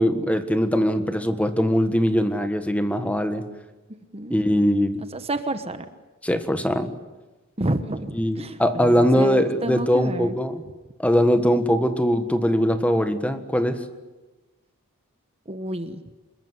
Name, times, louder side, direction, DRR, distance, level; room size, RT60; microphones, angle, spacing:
voice 1, 0.0-3.5 4.3-5.0 6.2-6.9 8.1-10.6 11.0-13.9, equal, 5° left, 9 dB, 1.5 m, -21 dB
voice 2, 4.9-5.8 7.6-10.3 15.5-16.0, right 1 dB, 25° right, 9 dB, 1.2 m, -30 dB
27.0 x 22.0 x 9.7 m, 1.1 s
head